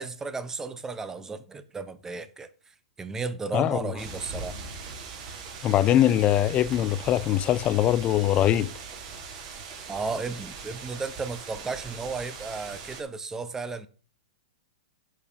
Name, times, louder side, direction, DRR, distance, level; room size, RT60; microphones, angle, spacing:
voice 1, 0.0-2.5 3.0-4.6 9.9-13.9, right 4 dB, 10° right, 0.9 m, -34 dB
voice 2, 3.5-3.9 5.6-8.7, left 12 dB, 30° left, 0.6 m, -22 dB
sound 1, 4.0-13.0, right 5 dB, 40° right, 3.2 m, -41 dB
10.5 x 4.9 x 5.5 m
hypercardioid pair, 125°, 4 cm